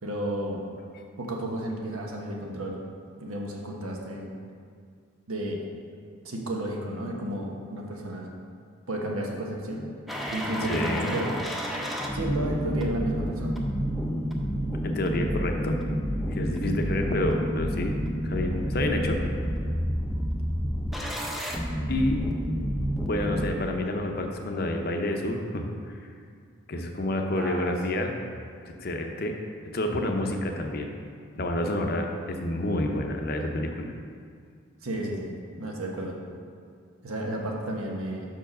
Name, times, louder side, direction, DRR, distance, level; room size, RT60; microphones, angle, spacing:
voice 1, 0.0-0.6 1.2-2.8 3.2-4.3 5.3-5.6 6.2-8.3 8.9-9.9 10.3-11.3 12.1-13.6 27.3-27.7 34.8-36.2 37.0-38.3, right 1 dB, 90° right, 0 dB, 1.1 m, -32 dB
sound 1, 10.1-23.5, equal, ahead, 0.4 m, -29 dB
voice 2, 10.6-11.2 14.8-15.8 16.3-18.0 18.2-19.2 21.9-22.2 23.0-25.9 26.7-28.1 28.6-29.3 29.7-30.9 31.4-33.9, left 1 dB, 45° left, 3 dB, 0.6 m, -29 dB
5.6 x 4.7 x 6.1 m, 2.2 s
head